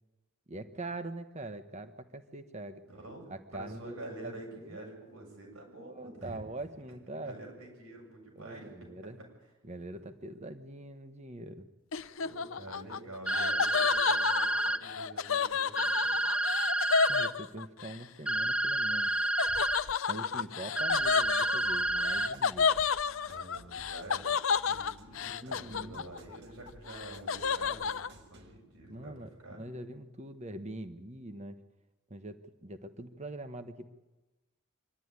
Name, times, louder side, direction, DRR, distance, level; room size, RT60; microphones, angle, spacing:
voice 1, 0.5-2.9 3.3-4.8 5.7-7.4 8.3-9.2 9.6-11.7 17.1-19.1 20.1-22.7 25.3-26.0 28.9-31.6 32.1-33.9, right 2 dB, 30° right, 9 dB, 1.3 m, -43 dB
voice 2, 2.9-3.3 3.5-6.4 7.2-8.7 9.9-10.1 12.2-16.2 20.3-20.4 23.3-29.6, right 2 dB, 90° right, 1 dB, 7.2 m, -47 dB
Laughter, 11.9-18.0 19.4-26.4 26.7-28.1, left 6 dB, 65° left, 0.6 m, -31 dB
sound 1, 13.3-14.8 15.8-17.3 18.3-19.8 20.8-22.3, right 1 dB, 5° right, 0.6 m, -29 dB
sound 2, 20.9-28.6, equal, 55° right, 1.8 m, -56 dB
24.5 x 12.0 x 9.7 m, 1.1 s
head